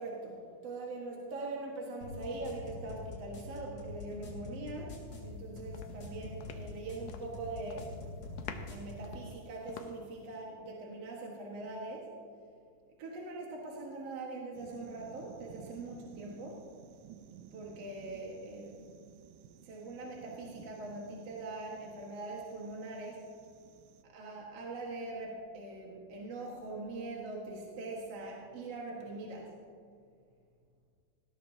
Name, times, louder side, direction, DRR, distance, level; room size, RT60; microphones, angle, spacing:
voice 1, 0.0-4.9 5.2-7.9 8.7-12.1 13.0-16.6 17.5-18.8 19.6-23.2 24.0-29.6, right 2 dB, 55° right, -3 dB, 2.5 m, -42 dB
sound 1, 2.0-9.1, left 2 dB, 65° left, 4.7 m, -45 dB
sound 2, 5.2-5.4 5.7-7.4 7.7-8.0 8.4-10.2, left 7 dB, 85° left, 2.4 m, -48 dB
sound 3, 14.5-24.0, right 9 dB, 80° right, 2.1 m, -55 dB
19.5 x 17.0 x 2.8 m, 2.1 s
omnidirectional pair, 3.6 m